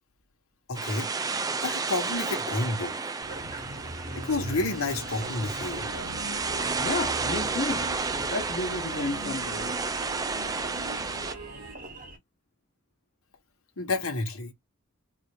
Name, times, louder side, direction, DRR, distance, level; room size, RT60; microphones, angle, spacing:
voice 1, 0.7-1.1 1.6-3.0 4.2-5.9 13.8-14.5, left 3 dB, 70° left, 1.6 m, -30 dB
sound 1, 0.7-11.3, right 4 dB, 15° right, 0.3 m, -32 dB
Engine, 3.2-12.2, right 1 dB, 40° right, 1.0 m, -41 dB
sound 2, 5.7-11.7, right 1 dB, 75° right, 1.5 m, -42 dB
voice 2, 6.8-7.9 8.3-9.7, left 2 dB, 50° left, 0.9 m, -32 dB
4.7 x 2.7 x 3.2 m
head